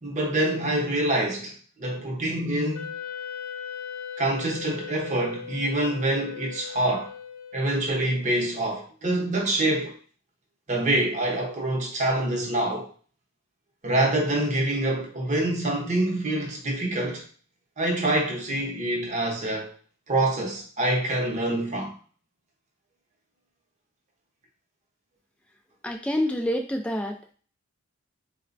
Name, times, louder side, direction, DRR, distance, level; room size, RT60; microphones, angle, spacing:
voice 1, 0.0-1.5 1.8-2.9 4.2-7.1 7.5-9.9 10.7-12.9 13.8-17.2 17.8-19.7 20.1-21.9, right 1 dB, 35° right, 0.7 m, -26 dB
Wind instrument woodwind instrument, 2.7-7.9, left 7 dB, 75° left, 0.4 m, -38 dB
voice 2, 25.8-27.2, equal, 5° left, 0.3 m, -27 dB
4.1 x 2.1 x 2.5 m
head